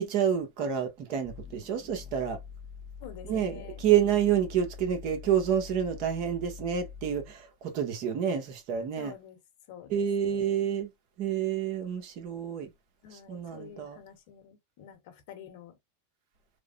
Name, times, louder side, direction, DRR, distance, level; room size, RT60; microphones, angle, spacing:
voice 1, 0.0-2.4 3.3-9.1 9.9-10.9 11.2-12.7 13.3-14.0, right 9 dB, 50° right, 0.9 m, -28 dB
sound 1, 1.2-7.4, left 6 dB, 5° left, 0.8 m, -45 dB
voice 2, 3.0-3.8 9.0-9.4 9.7-10.7 13.0-15.8, left 9 dB, 60° left, 1.0 m, -48 dB
3.4 x 2.0 x 2.4 m
supercardioid pair, 130°, 0 cm